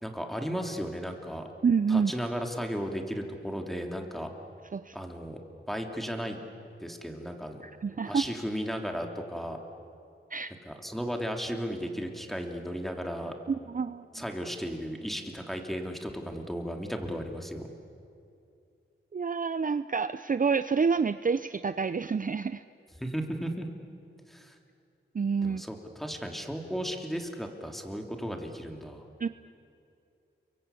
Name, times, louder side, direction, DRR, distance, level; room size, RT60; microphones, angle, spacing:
voice 1, 0.0-1.5 1.9-4.3 4.9-5.4 5.7-6.4 6.8-7.7 8.0-9.6 10.6-13.3 14.1-17.7 23.0-23.7 24.3-24.5 25.4-29.1, equal, ahead, 3 dB, 3.3 m, -35 dB
voice 2, 1.6-2.1 4.7-5.0 7.6-8.2 10.3-10.5 13.5-14.1 19.1-22.6 25.1-25.6 29.2-29.3, right 5 dB, 40° right, 12 dB, 0.6 m, -28 dB
30.0 x 23.5 x 8.5 m, 2.6 s
cardioid pair, 55°, 21 cm